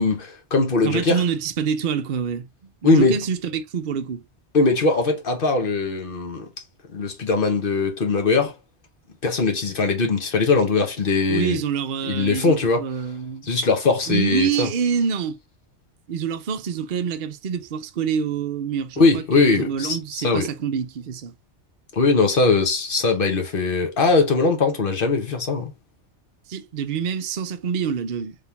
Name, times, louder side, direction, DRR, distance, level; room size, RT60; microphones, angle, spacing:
voice 1, 0.0-1.2 2.8-3.2 4.5-6.5 6.9-8.5 9.2-11.6 12.0-12.8 13.5-14.7 19.0-20.5 21.9-25.7, left 3 dB, 50° left, 1.3 m, -20 dB
voice 2, 0.8-2.5 2.8-4.2 11.3-13.5 14.1-15.4 16.1-21.3 26.5-28.4, right 7 dB, 55° right, 0.7 m, -26 dB
3.6 x 3.5 x 2.8 m
omnidirectional pair, 1.2 m